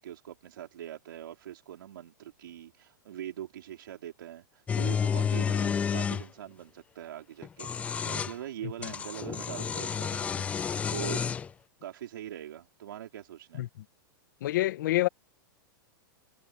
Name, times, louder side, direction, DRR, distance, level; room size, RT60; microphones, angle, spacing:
voice 1, 0.0-11.2 11.8-13.7, right 11 dB, 80° right, 4.0 m, -43 dB
sound 1, 4.7-6.2 7.4-8.3 8.8-11.5, left 7 dB, 10° left, 0.4 m, -30 dB
voice 2, 14.4-15.1, left 16 dB, 65° left, 1.2 m, -27 dB
supercardioid pair, 150°, 11 cm